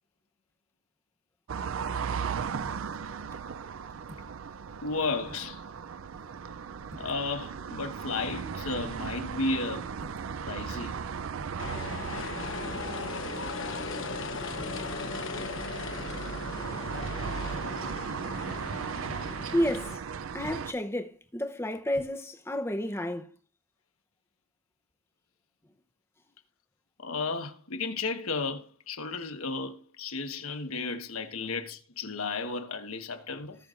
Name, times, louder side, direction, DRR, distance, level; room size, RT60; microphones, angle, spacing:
sound 1, 1.5-20.7, right 6 dB, 70° right, 0.4 m, -37 dB
sound 2, 2.6-3.0 4.0-4.4 4.8-4.9 5.2-5.6 6.8-7.2 7.9-8.0 8.3-8.7 9.9-10.3 11.3-11.7 13.0-13.3 14.5-14.9 16.0-16.4 17.4-17.8 19.0-19.3 20.4-20.8 21.9-22.1, equal, 30° right, 1.3 m, -48 dB
voice 1, 4.8-5.6 7.0-9.8 10.5-11.0 27.0-33.6, left 3 dB, 85° left, 1.3 m, -33 dB
sound 3, 11.6-20.0, left 3 dB, 65° left, 1.1 m, -37 dB
voice 2, 19.5-20.0 20.3-23.3, equal, 10° left, 0.7 m, -31 dB
18.0 x 6.7 x 2.5 m
head